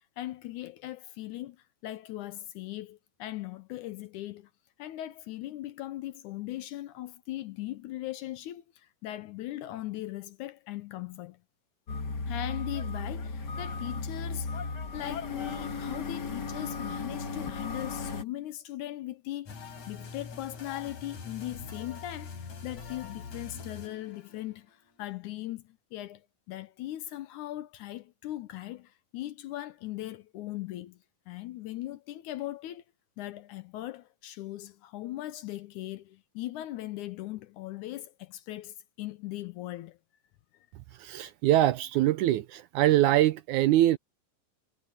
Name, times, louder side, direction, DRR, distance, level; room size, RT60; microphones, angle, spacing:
voice 1, 0.0-4.5 4.8-11.4 12.3-31.0 31.3-32.8 33.2-40.0, left 15 dB, 80° left, 1.9 m, -39 dB
sound 1, 11.9-18.2, left 4 dB, 40° left, 1.8 m, -35 dB
sound 2, 19.5-24.7, left 5 dB, 55° left, 4.7 m, -44 dB
voice 2, 40.9-44.0, right 14 dB, 80° right, 1.8 m, -23 dB
omnidirectional pair, 3.9 m